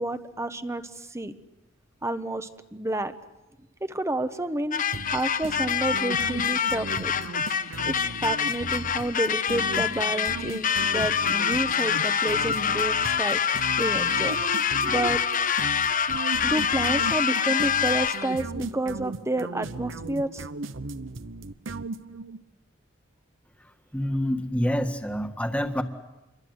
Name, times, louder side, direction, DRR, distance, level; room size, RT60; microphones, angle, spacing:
voice 1, 0.0-1.3 2.0-3.1 3.8-4.8 5.1-7.1 7.9-13.4 13.8-14.4 14.8-15.2 16.4-20.4, right 1 dB, 15° right, 10 dB, 1.1 m, -30 dB
sound 1, 4.7-18.4, left 7 dB, 45° left, 0.9 m, -26 dB
sound 2, 4.9-22.4, right 3 dB, 70° right, 1.0 m, -37 dB
voice 2, 23.9-25.8, equal, 5° left, 6 dB, 1.8 m, -27 dB
28.0 x 23.0 x 8.0 m, 0.98 s
head